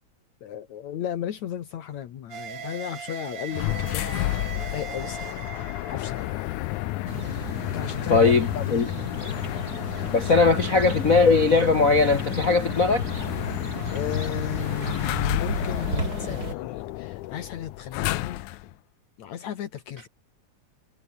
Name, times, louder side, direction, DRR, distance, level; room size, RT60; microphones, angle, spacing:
voice 1, 0.4-5.4 5.9-6.3 7.7-8.8 13.9-18.7 19.2-20.1, left 10 dB, 70° left, 2.8 m, -35 dB
sound 1, 2.3-7.6, right 8 dB, 85° right, 4.2 m, -40 dB
sound 2, 3.5-18.7, left 18 dB, 90° left, 2.1 m, -31 dB
sound 3, 7.1-16.5, right 2 dB, 30° right, 7.9 m, -34 dB
voice 2, 8.1-8.5 8.7-8.9 10.1-13.1, left 4 dB, 40° left, 1.3 m, -19 dB
omnidirectional pair, 3.5 m